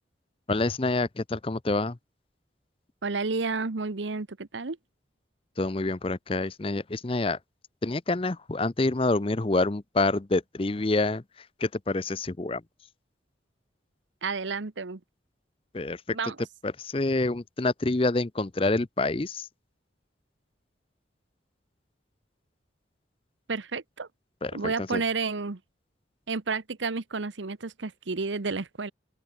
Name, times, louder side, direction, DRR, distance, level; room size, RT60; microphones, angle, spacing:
voice 1, 0.5-2.0 5.6-7.4 7.8-12.6 15.7-16.2 16.6-19.5 24.4-25.0, left 2 dB, 30° left, 0.6 m, -27 dB
voice 2, 3.0-4.8 14.2-15.0 16.1-16.4 23.5-24.1 24.5-25.6 26.3-28.9, right 4 dB, 80° right, 1.0 m, -31 dB
open air
head